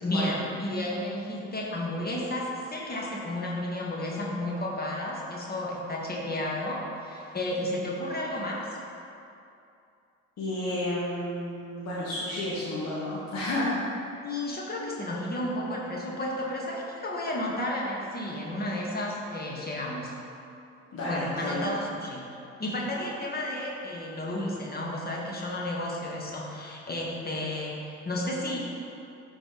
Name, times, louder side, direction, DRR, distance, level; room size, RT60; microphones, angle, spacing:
voice 1, 0.0-8.7 14.2-20.1 21.1-28.6, left 1 dB, 25° left, -3 dB, 1.8 m, -32 dB
voice 2, 10.4-14.0 20.9-21.7, left 1 dB, 40° left, -9 dB, 1.7 m, -31 dB
12.0 x 4.4 x 3.2 m, 2.6 s
figure-of-eight pair, 50°, 39 cm